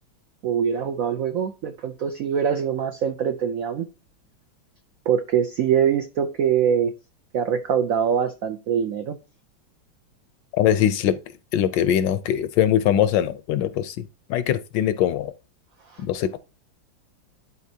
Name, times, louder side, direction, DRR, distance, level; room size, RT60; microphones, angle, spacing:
voice 1, 0.4-3.9 5.1-6.9 7.3-9.2 10.7-10.8 15.8-16.0, right 8 dB, 85° right, 0.7 m, -23 dB
voice 2, 10.6-11.2 11.5-15.3 16.0-16.4, left 10 dB, 75° left, 1.1 m, -22 dB
11.0 x 4.2 x 2.7 m
omnidirectional pair, 2.2 m